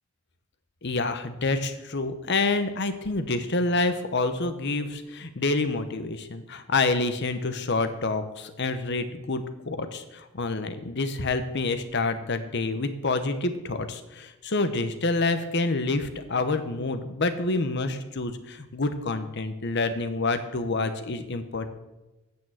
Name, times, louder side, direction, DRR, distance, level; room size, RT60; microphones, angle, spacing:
voice 1, 0.8-21.7, left 3 dB, 55° left, 9 dB, 0.9 m, -28 dB
8.6 x 6.8 x 7.7 m, 1.0 s
head